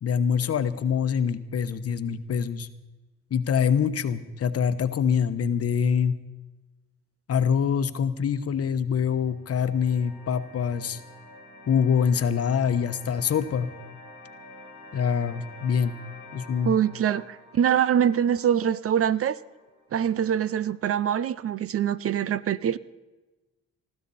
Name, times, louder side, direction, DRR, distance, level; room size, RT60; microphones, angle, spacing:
voice 1, 0.0-2.7 3.3-6.1 7.3-11.0 11.7-13.7 14.9-16.0 16.3-16.7, left 7 dB, 50° left, 1.0 m, -25 dB
sound 1, 8.9-20.0, left 2 dB, 65° right, 4.3 m, -48 dB
voice 2, 16.7-19.4 19.9-22.8, right 9 dB, 50° right, 0.6 m, -24 dB
20.5 x 14.0 x 4.2 m
cardioid pair, 90°, 30 cm